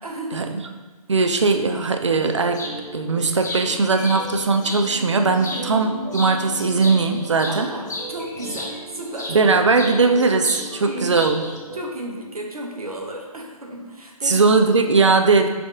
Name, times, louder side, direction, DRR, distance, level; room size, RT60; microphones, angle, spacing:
voice 1, 0.0-0.7 5.5-5.7 7.5-9.4 10.7-11.2 11.7-14.6, right 1 dB, 70° right, 0 dB, 0.9 m, -34 dB
voice 2, 1.1-2.7 2.9-7.7 9.3-11.4 14.3-15.5, right 4 dB, 50° right, 6 dB, 0.4 m, -19 dB
sound 1, 2.2-11.8, right 1 dB, 25° right, 1.3 m, -37 dB
sound 2, 2.5-2.8 3.2-4.8 5.3-5.9 6.1-9.4 9.7-10.7 10.9-11.6, left 2 dB, 30° left, 0.5 m, -34 dB
3.5 x 3.5 x 3.7 m, 1.3 s
figure-of-eight pair, 145°, 19 cm